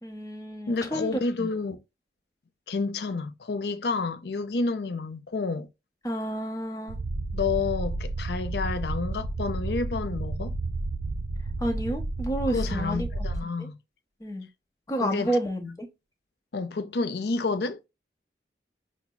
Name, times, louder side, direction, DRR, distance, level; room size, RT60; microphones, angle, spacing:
voice 1, 0.0-1.5 6.0-7.0 11.6-13.1 13.6-13.7 14.2-14.5 14.9-15.9, right 1 dB, 20° left, 0.8 m, -30 dB
voice 2, 0.7-1.8 2.7-5.7 7.3-10.5 12.5-13.8 15.0-15.4 16.5-17.8, left 4 dB, 70° left, 0.5 m, -29 dB
sound 1, 6.9-13.4, right 2 dB, 65° right, 0.4 m, -31 dB
5.7 x 2.1 x 2.2 m
head